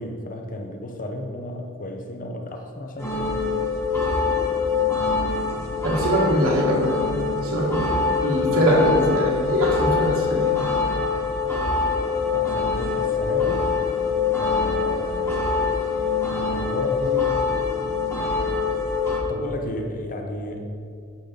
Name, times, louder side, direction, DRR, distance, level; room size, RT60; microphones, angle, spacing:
voice 1, 0.0-3.4 8.5-8.6 12.3-13.7 14.3-15.5 16.5-17.5 19.3-20.7, left 1 dB, 40° left, 3 dB, 0.7 m, -33 dB
sound 1, 3.0-19.2, left 5 dB, 10° left, 1.3 m, -24 dB
voice 2, 5.8-6.9 7.3-10.5, right 1 dB, 70° right, -3 dB, 1.7 m, -22 dB
8.5 x 6.5 x 4.0 m, 2.3 s
head